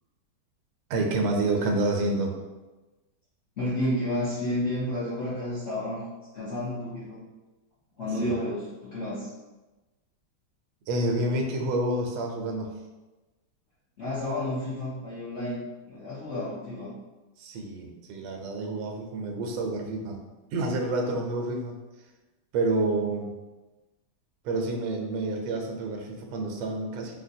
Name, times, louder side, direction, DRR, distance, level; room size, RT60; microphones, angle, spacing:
voice 1, 0.9-2.4 8.2-8.4 10.9-12.7 17.4-20.2 20.5-21.8 22.5-23.3 24.4-27.2, right 2 dB, 90° right, 2 dB, 1.4 m, -28 dB
voice 2, 3.6-6.0 6.3-7.2 8.0-9.3 14.0-17.0, left 1 dB, 50° left, -11 dB, 0.8 m, -31 dB
3.9 x 2.2 x 2.6 m, 1.1 s
omnidirectional pair, 2.2 m